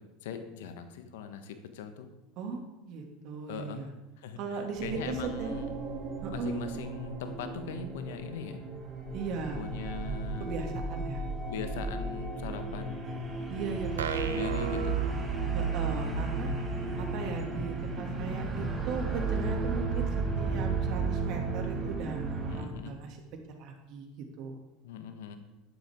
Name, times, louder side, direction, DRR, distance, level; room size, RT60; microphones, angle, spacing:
voice 1, 0.2-2.1 3.5-3.9 4.2-4.4 4.8-5.7 6.3-8.7 9.5-10.5 11.5-13.1 14.2-15.0 22.5-23.0 24.8-25.4, left 7 dB, 70° left, 8 dB, 1.4 m, -40 dB
voice 2, 2.9-3.9 4.4-5.5 6.2-6.7 9.1-9.6 10.4-11.2 13.5-14.4 15.5-16.5 16.9-23.2 23.5-24.1 24.4-24.6, right 5 dB, 55° right, 3 dB, 2.5 m, -38 dB
sound 1, 4.8-22.6, right 3 dB, 25° right, 3.9 m, -33 dB
sound 2, 14.0-15.9, right 7 dB, 85° right, 0.9 m, -36 dB
12.0 x 11.5 x 3.7 m, 0.97 s
hypercardioid pair, 80°, 0 cm